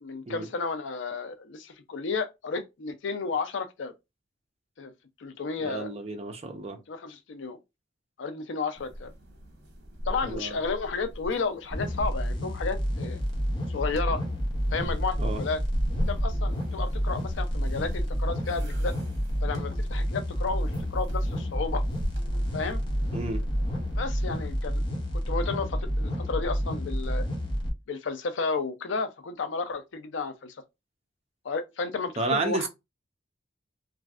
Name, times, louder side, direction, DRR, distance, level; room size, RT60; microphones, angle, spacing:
voice 1, 0.0-3.9 4.8-4.9 5.2-5.9 6.9-7.6 8.2-9.1 10.1-13.2 13.7-14.2 14.7-15.6 16.1-19.0 19.4-21.8 22.5-22.8 23.9-24.8 25.1-27.3 27.9-30.6 31.4-32.7, left 4 dB, 80° left, 0.5 m, -32 dB
voice 2, 5.6-6.8 10.2-10.6 15.2-15.4 23.1-23.4 32.2-32.7, right 3 dB, 35° right, 0.6 m, -31 dB
sound 1, 8.7-24.5, equal, 65° right, 0.9 m, -38 dB
sound 2, 11.7-27.7, equal, 25° left, 0.8 m, -29 dB
3.1 x 2.5 x 2.3 m
head